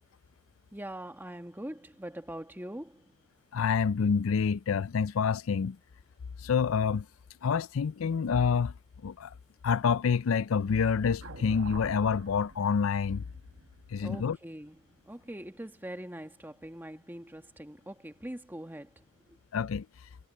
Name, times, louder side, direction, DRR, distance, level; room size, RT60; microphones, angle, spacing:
voice 1, 0.7-3.1 14.0-14.8 15.0-19.4, right 1 dB, 10° right, 1.4 m, -43 dB
voice 2, 3.5-5.8 6.4-7.1 7.4-8.7 9.0-9.3 9.6-13.2 13.9-14.4 19.5-19.9, left 6 dB, 85° left, 0.4 m, -27 dB
sound 1, 11.2-15.5, right 2 dB, 75° right, 1.2 m, -48 dB
head